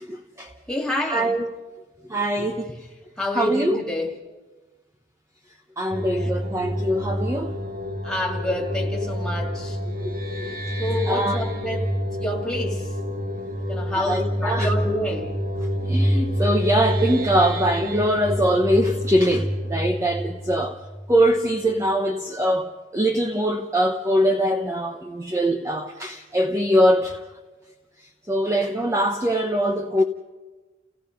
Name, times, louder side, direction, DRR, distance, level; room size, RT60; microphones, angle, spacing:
voice 1, 0.0-0.5 1.0-1.5 2.1-2.8 3.3-3.8 5.8-7.6 10.0-10.1 10.4-10.6 11.1-11.4 13.9-14.7 15.8-20.8 21.1-27.2 28.3-30.0, equal, 15° right, 0.9 m, -22 dB
voice 2, 0.7-1.3 3.2-4.1 6.2-6.3 8.0-9.8 10.8-11.9 12.2-12.9 13.7-15.3, left 1 dB, 5° left, 2.7 m, -28 dB
sound 1, 5.9-21.4, equal, 50° right, 2.0 m, -27 dB
30.0 x 17.0 x 5.4 m
head